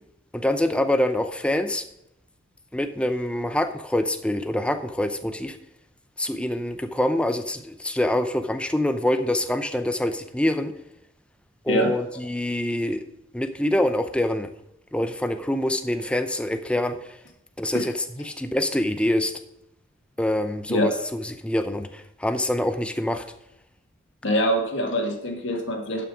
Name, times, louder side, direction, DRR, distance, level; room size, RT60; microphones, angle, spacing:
voice 1, 0.3-1.8 2.7-5.6 6.2-10.7 11.6-13.0 13.3-14.5 14.9-17.2 17.6-19.3 20.2-23.2, left 1 dB, 5° left, 8 dB, 0.5 m, -25 dB
voice 2, 24.2-26.0, equal, 65° left, 3 dB, 1.8 m, -24 dB
11.0 x 5.9 x 4.9 m, 0.81 s
head